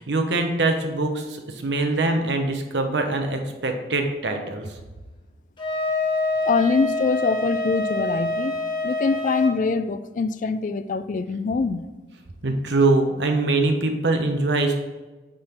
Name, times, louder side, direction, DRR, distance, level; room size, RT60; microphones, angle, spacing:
voice 1, 0.0-4.8 12.4-14.7, right 2 dB, 80° right, 1.0 m, -23 dB
Wind instrument woodwind instrument, 5.6-9.5, left 2 dB, 25° left, 1.3 m, -26 dB
voice 2, 6.5-11.9, left 4 dB, 45° left, 0.3 m, -24 dB
8.7 x 3.8 x 4.4 m
head